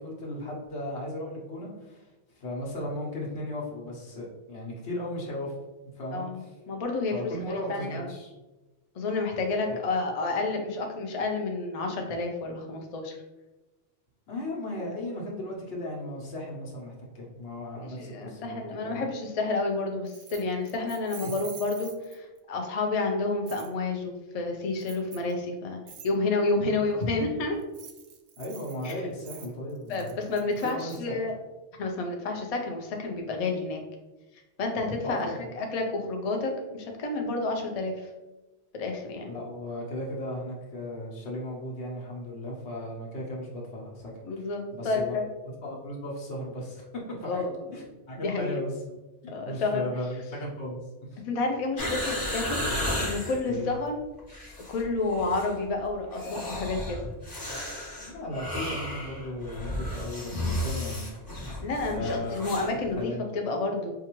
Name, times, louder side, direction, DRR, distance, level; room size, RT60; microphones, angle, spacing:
voice 1, 0.0-2.1 2.4-5.5 5.9-6.3 7.1-8.3 9.7-9.8 14.3-19.0 21.2-21.3 26.6-26.7 28.4-30.1 30.6-31.2 35.0-35.5 39.2-44.1 44.4-44.5 44.7-45.1 45.6-47.4 47.7-48.9 49.4-50.8 51.1-51.2 53.5-53.7 58.0-61.1 61.4-61.6 61.9-62.3 63.0-63.2, left 1 dB, 70° left, -2 dB, 1.2 m, -36 dB
voice 2, 6.1-7.1 7.5-8.1 9.0-13.2 17.7-27.6 28.8-28.9 29.9-31.3 31.8-33.8 34.6-38.1 38.7-39.3 44.2-45.3 47.2-47.7 48.2-48.6 49.3-49.9 51.2-52.6 53.0-54.0 54.7-57.1 61.6-63.9, left 3 dB, 50° left, 2 dB, 0.4 m, -30 dB
Keys jangling, 20.1-22.4 23.5-23.7 24.8-25.3 25.9-26.1 27.6-31.0, right 8 dB, 60° right, 0.6 m, -47 dB
sound 1, 51.8-53.4 54.2-54.8 55.1-55.5 56.1-62.7 63.0-63.1, left 1 dB, 20° left, 1.0 m, -33 dB
4.5 x 2.4 x 3.0 m, 1.1 s
omnidirectional pair, 1.2 m